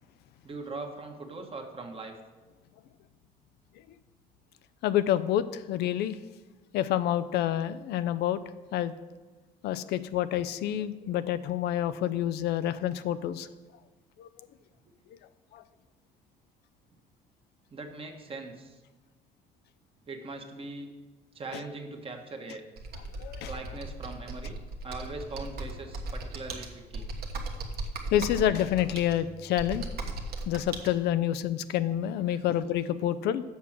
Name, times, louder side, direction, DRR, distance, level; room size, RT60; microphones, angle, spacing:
voice 1, 0.4-2.1 17.7-18.8 20.1-20.9 21.3-22.6 23.4-24.6 24.8-27.0 32.2-32.4, right 3 dB, 35° right, 3 dB, 1.3 m, -40 dB
voice 2, 4.8-6.1 6.7-8.4 8.7-8.9 9.6-13.5 14.2-14.3 15.5-15.6 23.2-23.5 28.1-29.9 30.5-33.4, left 11 dB, 75° left, 13 dB, 0.5 m, -28 dB
Computer keyboard, 22.8-30.9, right 2 dB, 70° right, 1.3 m, -37 dB
7.2 x 6.0 x 7.3 m, 1.2 s
cardioid pair, 110°, 17 cm